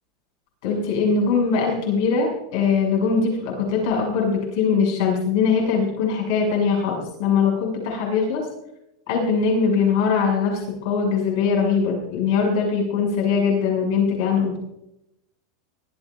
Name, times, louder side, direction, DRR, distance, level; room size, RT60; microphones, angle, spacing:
voice 1, 0.6-8.5 9.1-14.6, left 5 dB, 55° left, 0 dB, 6.9 m, -21 dB
24.0 x 14.0 x 2.6 m, 0.83 s
supercardioid pair, 180°, 2 cm